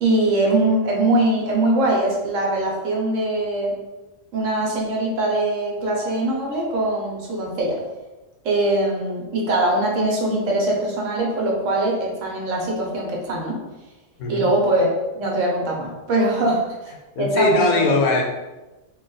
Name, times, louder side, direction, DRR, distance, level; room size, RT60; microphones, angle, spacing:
voice 1, 0.0-3.7 4.3-7.8 8.4-13.6 14.3-16.9 17.2-17.9, right 1 dB, 65° right, -2 dB, 1.2 m, -22 dB
voice 2, 17.2-18.2, left 2 dB, 90° left, 2 dB, 1.1 m, -20 dB
3.4 x 2.3 x 3.8 m, 1.1 s
omnidirectional pair, 1.4 m